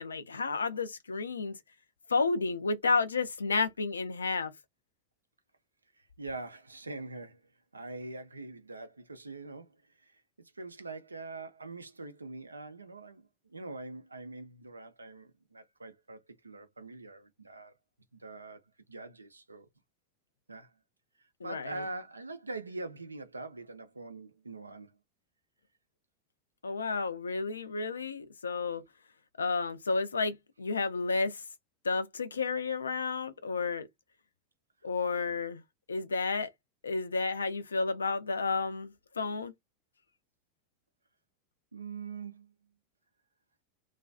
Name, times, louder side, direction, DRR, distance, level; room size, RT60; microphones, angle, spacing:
voice 1, 0.0-1.6 2.1-4.5 21.4-21.8 26.6-28.8 29.4-31.4 31.8-33.9 34.8-35.6 35.9-36.5 36.8-39.5, left 4 dB, 85° left, 0.4 m, -31 dB
voice 2, 6.2-7.4 7.7-9.8 10.0-17.7 18.2-18.6 18.9-19.7 20.5-20.7 21.4-25.0 41.7-42.5, right 3 dB, 90° right, 0.5 m, -43 dB
2.4 x 2.3 x 2.3 m
figure-of-eight pair, 85°, 0 cm